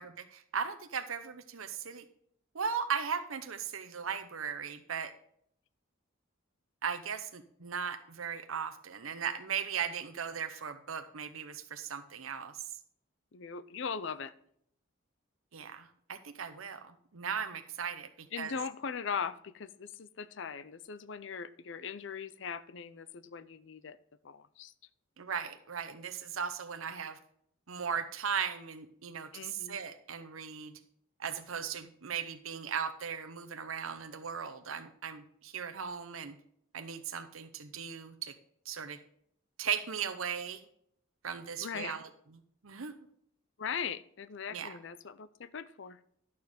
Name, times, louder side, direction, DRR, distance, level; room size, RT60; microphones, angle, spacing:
voice 1, 0.0-2.0 2.5-5.1 6.8-12.5 15.5-18.5 25.2-27.2 27.7-30.7 31.2-36.4 36.7-38.3 38.7-39.0 39.6-40.6 41.2-42.1 42.6-42.9 44.5-44.7, right 7 dB, 80° right, 8 dB, 0.8 m, -37 dB
voice 2, 13.3-14.3 18.3-24.0 24.2-24.7 29.3-29.8 41.6-42.0 43.6-46.0, left 6 dB, 60° left, 14 dB, 0.5 m, -40 dB
12.0 x 6.9 x 5.1 m, 0.68 s
head